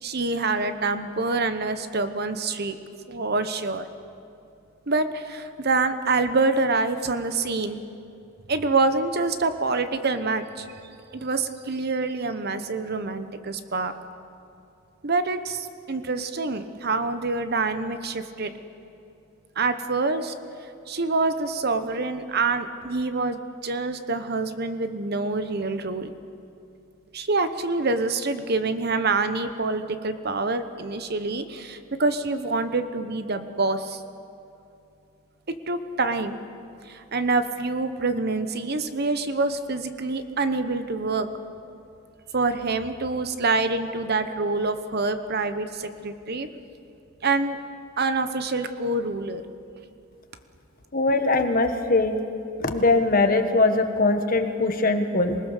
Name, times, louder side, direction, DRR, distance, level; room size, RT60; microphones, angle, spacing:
voice 1, 0.0-2.8 3.1-3.8 4.9-7.8 8.5-10.7 11.1-13.9 15.0-18.5 19.6-20.3 20.9-26.1 27.1-34.0 35.7-36.4 36.9-41.3 42.3-46.5 47.2-47.6 48.0-49.4, right 3 dB, 50° right, 10 dB, 1.0 m, -26 dB
voice 2, 50.9-52.1 52.6-55.4, left 3 dB, 45° left, 6 dB, 1.3 m, -21 dB
26.5 x 20.0 x 6.7 m, 2.7 s
head